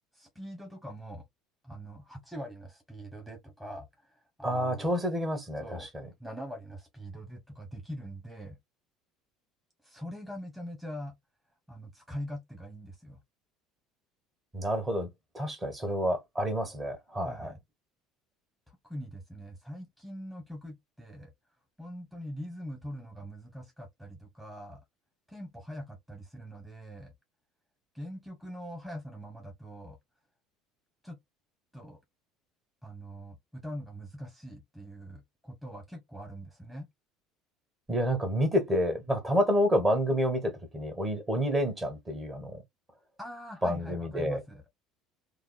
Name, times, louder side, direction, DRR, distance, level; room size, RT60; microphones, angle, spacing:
voice 1, 0.1-1.2 1.6-4.9 5.6-5.9 6.2-8.6 9.8-11.2 11.7-13.2 17.2-17.6 18.7-21.3 21.8-24.8 25.3-27.1 27.9-30.0 31.0-31.2 31.7-32.0 32.8-36.9 43.2-44.6, equal, 5° right, 1.1 m, -43 dB
voice 2, 4.4-6.1 14.5-15.1 15.3-17.5 37.9-42.6 43.6-44.4, equal, 25° right, 1.3 m, -29 dB
3.2 x 2.0 x 2.4 m
hypercardioid pair, 70°, 0 cm